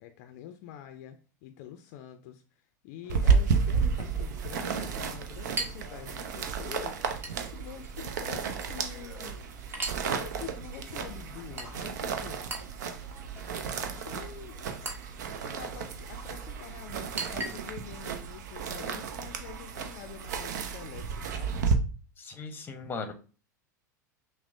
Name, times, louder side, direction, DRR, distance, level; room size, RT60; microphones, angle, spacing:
voice 1, 0.0-7.0 7.5-9.5 10.1-12.4 13.9-14.6 15.3-21.6, left 10 dB, 55° left, 7 dB, 0.4 m, -46 dB
Chink clink, 3.0-18.0, right 2 dB, 20° right, 0.9 m, -44 dB
sound 1, 3.1-21.8, right 5 dB, 65° right, 0.5 m, -32 dB
voice 2, 22.2-23.1, left 4 dB, 20° left, 7 dB, 0.8 m, -38 dB
5.8 x 2.1 x 2.6 m, 0.36 s
figure-of-eight pair, 90°, 10 cm